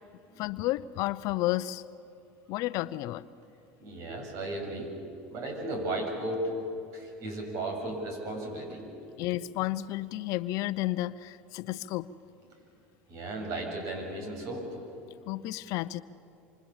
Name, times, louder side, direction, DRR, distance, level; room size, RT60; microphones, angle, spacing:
voice 1, 0.4-1.8 2.5-3.2 9.2-12.1 15.3-16.0, left 16 dB, 60° left, 15 dB, 0.7 m, -31 dB
voice 2, 3.8-5.0 5.3-6.5 6.9-9.0 13.1-14.8, right 2 dB, 55° right, 3 dB, 7.3 m, -35 dB
26.5 x 26.0 x 7.3 m, 2.6 s
hypercardioid pair, 90°, 6 cm